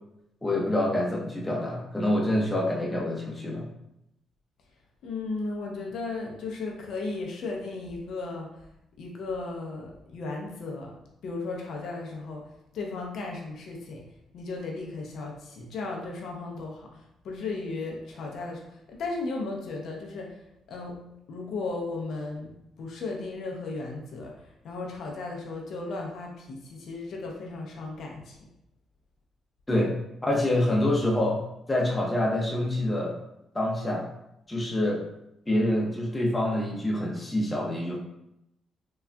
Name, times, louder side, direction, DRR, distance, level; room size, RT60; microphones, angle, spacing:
voice 1, 0.4-3.6 29.7-29.9 30.2-31.4 31.7-33.2 33.5-34.1 34.5-35.0 35.5-38.0, left 1 dB, 15° left, -2 dB, 0.7 m, -26 dB
voice 2, 5.0-8.5 9.0-10.9 11.2-12.4 12.7-14.0 14.3-16.9 17.2-18.6 18.9-20.3 20.7-21.0 21.3-24.3 24.6-28.4, left 3 dB, 70° left, 0 dB, 0.5 m, -35 dB
3.6 x 2.3 x 2.2 m, 0.83 s
cardioid pair, 90°, 0 cm